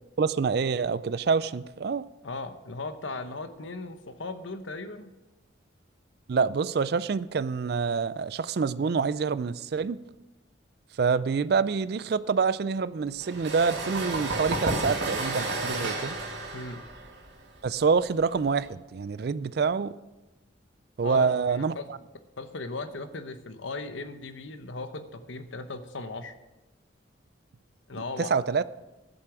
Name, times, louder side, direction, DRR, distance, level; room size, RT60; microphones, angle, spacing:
voice 1, 0.2-2.0 6.3-10.0 11.0-16.2 17.6-19.9 21.0-21.7 28.2-28.6, right 5 dB, 55° right, 17 dB, 0.4 m, -26 dB
voice 2, 2.2-5.1 16.5-16.8 21.0-21.9 22.4-26.4 27.9-28.3, left 3 dB, 80° left, 9 dB, 0.9 m, -37 dB
sound 1, 13.2-18.7, right 2 dB, 75° right, 2.1 m, -32 dB
11.0 x 8.0 x 6.0 m, 1.0 s
head